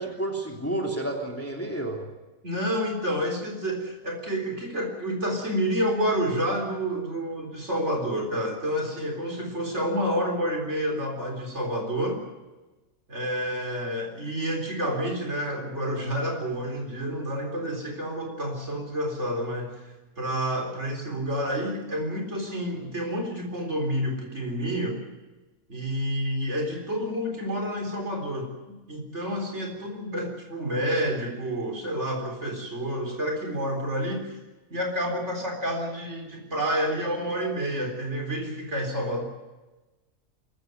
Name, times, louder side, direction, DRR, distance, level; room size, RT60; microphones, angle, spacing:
voice 1, 0.0-2.0, right 1 dB, 10° left, 1 dB, 2.9 m, -30 dB
voice 2, 2.4-12.2 13.1-25.0 25.7-34.4 34.7-39.2, equal, 50° right, 3 dB, 4.3 m, -29 dB
23.0 x 14.5 x 9.4 m, 1.1 s
omnidirectional pair, 1.5 m